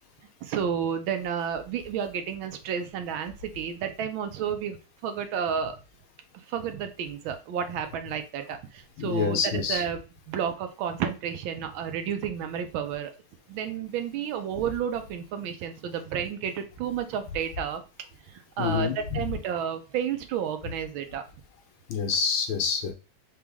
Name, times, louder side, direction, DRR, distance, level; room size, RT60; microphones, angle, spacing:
voice 1, 0.4-4.8 5.0-5.8 6.3-10.0 10.3-13.1 13.5-17.8 18.3-21.2, right 8 dB, 75° right, 8 dB, 1.4 m, -31 dB
voice 2, 9.0-9.8 18.6-19.2 21.9-22.9, left 6 dB, 75° left, 4 dB, 1.7 m, -27 dB
4.0 x 3.3 x 3.4 m, 0.32 s
omnidirectional pair, 2.3 m